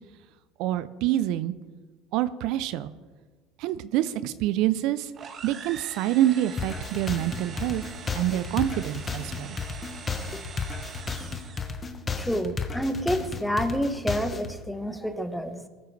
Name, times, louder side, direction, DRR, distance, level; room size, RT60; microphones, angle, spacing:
voice 1, 0.6-1.5 2.1-2.9 3.6-5.1 5.4-7.8 8.1-9.6, right 13 dB, 65° right, 15 dB, 0.5 m, -26 dB
sound 1, 5.1-11.8, right 6 dB, 40° right, 1.3 m, -43 dB
sound 2, 6.6-14.5, left 4 dB, 25° left, 1.2 m, -33 dB
voice 2, 12.2-15.7, equal, ahead, 9 dB, 1.2 m, -28 dB
20.0 x 9.0 x 3.3 m, 1.4 s
hypercardioid pair, 80°, 0 cm